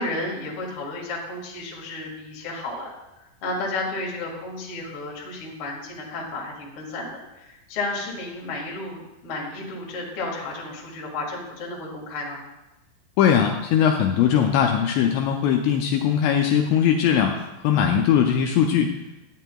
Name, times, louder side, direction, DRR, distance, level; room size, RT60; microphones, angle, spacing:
voice 1, 0.0-2.9 3.2-12.4, left 2 dB, 65° left, -3 dB, 1.3 m, -32 dB
voice 2, 13.2-18.9, left 8 dB, 85° left, 2 dB, 2.6 m, -20 dB
11.5 x 9.1 x 2.3 m, 1.0 s
omnidirectional pair, 5.5 m